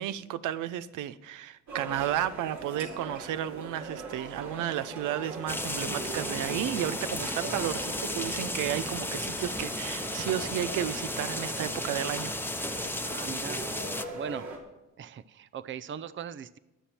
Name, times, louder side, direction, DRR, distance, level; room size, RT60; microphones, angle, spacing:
voice 1, 0.0-12.3, right 11 dB, 85° right, 15 dB, 0.8 m, -33 dB
sound 1, 1.7-14.6, right 3 dB, 70° right, 3.3 m, -41 dB
sound 2, 5.5-14.0, left 2 dB, 5° left, 0.9 m, -34 dB
voice 2, 13.0-13.6 14.1-14.5 15.0-16.6, right 7 dB, 40° right, 16 dB, 0.6 m, -39 dB
21.5 x 7.3 x 4.4 m, 0.98 s
cardioid pair, 90°, 30 cm